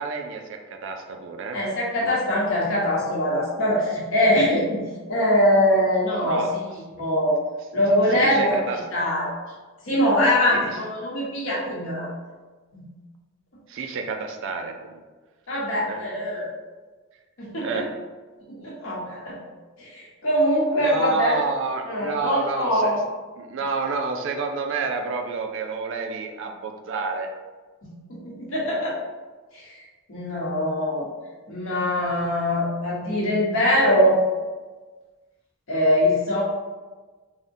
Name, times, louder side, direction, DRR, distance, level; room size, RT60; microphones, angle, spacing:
voice 1, 0.0-1.6 6.2-6.5 8.1-8.8 10.5-10.8 13.7-15.0 15.9-16.0 17.6-17.9 20.8-23.0 23.4-27.3, right 4 dB, 60° right, 4 dB, 0.4 m, -29 dB
voice 2, 1.5-4.8 5.1-6.4 7.0-7.4 7.7-8.6 8.9-9.3 9.9-12.1 12.7-12.8 15.5-16.5 17.4-17.8 18.5-19.4 19.8-21.4 21.9-23.0 27.8-29.0 29.5-29.7 30.1-31.1 31.5-34.2 35.7-36.4, left 1 dB, 65° left, -5 dB, 1.0 m, -22 dB
3.5 x 2.1 x 2.6 m, 1.3 s
head